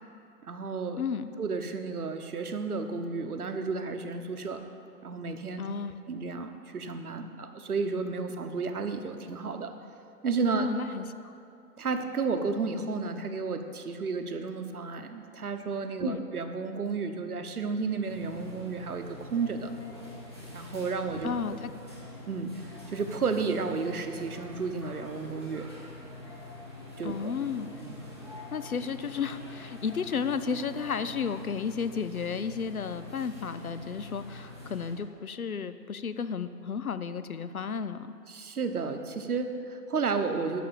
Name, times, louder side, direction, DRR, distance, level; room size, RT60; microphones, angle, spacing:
voice 1, 0.4-1.0 1.4-4.6 5.0-5.6 6.1-9.7 10.2-10.7 11.8-19.7 20.5-21.3 22.3-25.7 27.0-27.3 27.8-28.0 38.3-40.6, right 4 dB, 60° right, 7 dB, 1.1 m, -32 dB
voice 2, 1.0-1.3 5.6-6.0 10.6-11.3 16.0-16.2 21.2-21.7 27.0-27.7 28.5-38.1, left 6 dB, 60° left, 12 dB, 0.6 m, -33 dB
sound 1, 18.0-35.0, left 2 dB, 15° left, 1.1 m, -45 dB
11.5 x 6.9 x 8.7 m, 2.5 s
hypercardioid pair, 180°, 50 cm